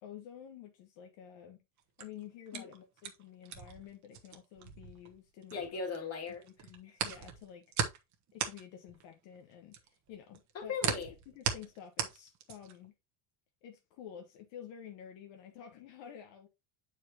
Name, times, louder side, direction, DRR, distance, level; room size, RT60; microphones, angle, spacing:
voice 1, 0.0-1.6 2.0-5.8 6.4-7.6 8.3-10.7 11.3-12.9 13.6-16.5, left 9 dB, 60° left, 1.3 m, -50 dB
sound 1, 1.8-6.0 6.3-12.9, right 8 dB, 35° right, 1.2 m, -38 dB
voice 2, 5.5-6.4 6.8-6.9 10.5-11.1, left 5 dB, 30° left, 2.4 m, -38 dB
9.0 x 4.9 x 2.9 m
cardioid pair, 175°, 49 cm